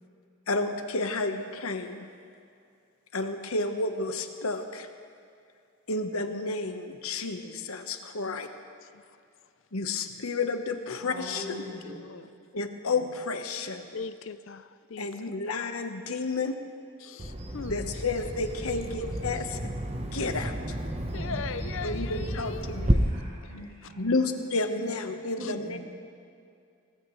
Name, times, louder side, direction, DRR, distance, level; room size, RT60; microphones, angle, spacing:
voice 1, 0.5-2.1 3.1-4.9 5.9-8.5 9.7-11.6 12.5-13.9 15.0-16.6 17.6-19.6 20.1-20.8 21.8-23.0 24.0-25.8, left 3 dB, 90° left, 6 dB, 1.2 m, -31 dB
voice 2, 11.0-12.0 22.6-24.0 25.4-25.8, equal, 50° right, -9 dB, 3.9 m, -41 dB
voice 3, 13.9-15.1 17.0-17.9 18.7-18.9 21.1-22.7 25.4-25.5, left 5 dB, 65° left, 12 dB, 0.6 m, -39 dB
Bird vocalization bird call bird song, 17.2-22.9, right 1 dB, 30° right, 1.0 m, -32 dB
24.0 x 18.0 x 3.2 m, 2.4 s
head